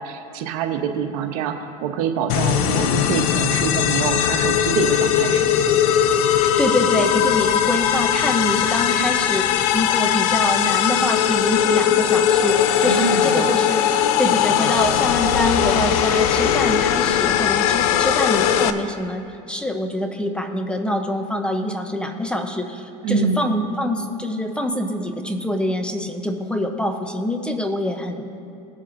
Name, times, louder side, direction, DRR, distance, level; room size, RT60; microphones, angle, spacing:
voice 1, 0.0-5.5 12.8-13.5 23.0-23.5, right 6 dB, 80° right, 6 dB, 0.9 m, -25 dB
sound 1, 2.3-18.7, left 9 dB, 80° left, 0.5 m, -19 dB
voice 2, 6.6-13.9 14.2-19.2 19.5-28.2, left 1 dB, 5° left, 6 dB, 0.6 m, -25 dB
18.5 x 7.4 x 2.6 m, 2.6 s
supercardioid pair, 120°, 19 cm